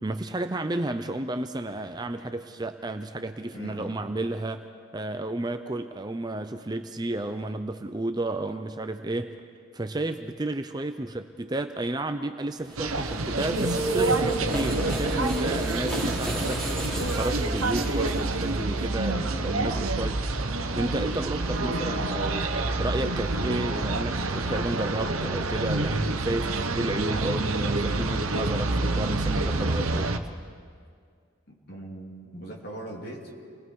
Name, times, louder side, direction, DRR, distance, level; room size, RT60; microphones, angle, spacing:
voice 1, 0.0-4.6 4.9-9.3 9.7-20.3 20.7-30.1, right 2 dB, 20° right, 8 dB, 0.6 m, -32 dB
voice 2, 3.5-4.0 20.8-21.3 31.5-33.3, right 1 dB, 50° left, -1 dB, 3.2 m, -40 dB
sound 1, 12.6-24.0, right 1 dB, 5° left, 4.5 m, -35 dB
York traffic and voices, 12.8-30.2, right 2 dB, 90° right, 1.1 m, -28 dB
29.5 x 20.5 x 4.7 m, 2.1 s
head